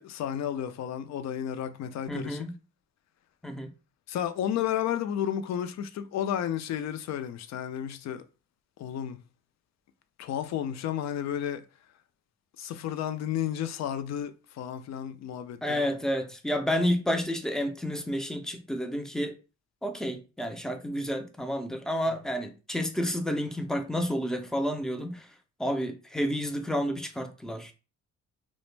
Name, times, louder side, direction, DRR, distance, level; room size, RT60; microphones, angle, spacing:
voice 1, 0.0-2.4 4.1-8.2 8.8-9.2 10.2-11.6 12.6-16.0, left 10 dB, 65° left, 0.4 m, -32 dB
voice 2, 2.1-2.5 3.4-3.7 15.6-19.4 19.8-25.3 25.6-27.7, equal, ahead, 0.4 m, -30 dB
2.5 x 2.1 x 3.2 m
cardioid pair, 90°, 30 cm